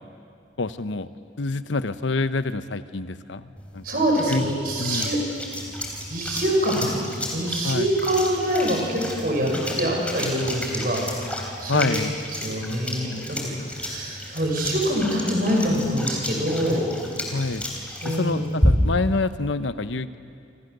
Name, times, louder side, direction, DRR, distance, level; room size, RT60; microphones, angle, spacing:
voice 1, 0.6-1.1 1.4-3.8 4.3-4.5 4.8-5.1 7.6-7.9 11.7-12.1 17.3-17.6 18.0-20.2, left 3 dB, 80° left, 12 dB, 0.9 m, -26 dB
sound 1, 3.6-19.1, left 1 dB, 5° left, 3.7 m, -31 dB
voice 2, 3.8-5.2 6.1-7.0 7.3-11.0 11.6-11.9 12.3-16.8 18.0-18.4, equal, 50° right, 0 dB, 5.9 m, -25 dB
29.0 x 26.0 x 6.7 m, 2.3 s
head